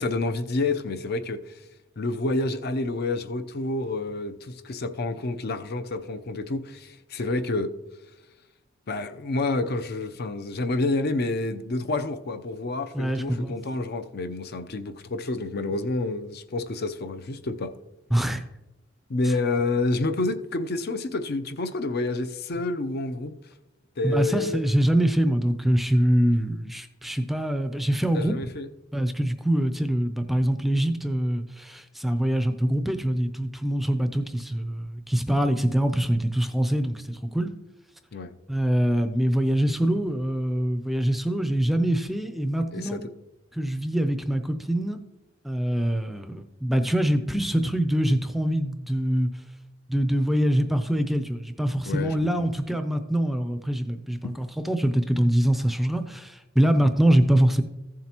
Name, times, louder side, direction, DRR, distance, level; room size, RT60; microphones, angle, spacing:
voice 1, 0.0-1.6 2.0-7.7 8.9-17.7 19.1-23.3 24.0-24.6 28.1-28.7 38.1-38.3 42.7-43.0 51.8-52.5, left 2 dB, 55° left, 0.6 m, -28 dB
voice 2, 12.9-13.5 18.1-18.4 19.2-19.3 24.0-28.3 28.9-37.5 38.5-43.1 43.5-45.0 45.4-49.3 49.9-57.6, right 1 dB, ahead, 0.5 m, -24 dB
14.5 x 7.4 x 2.9 m
head